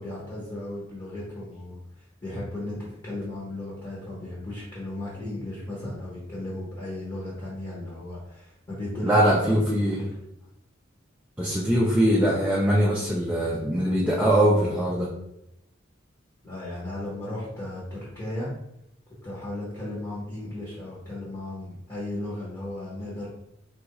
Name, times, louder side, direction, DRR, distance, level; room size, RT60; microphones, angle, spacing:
voice 1, 0.0-1.8 2.2-9.8 10.2-10.3 16.4-18.5 19.2-23.3, left 1 dB, 20° left, -7 dB, 0.9 m, -35 dB
voice 2, 9.0-10.0 11.4-15.1, equal, 5° right, -5 dB, 0.4 m, -22 dB
3.8 x 2.3 x 2.9 m, 0.81 s
head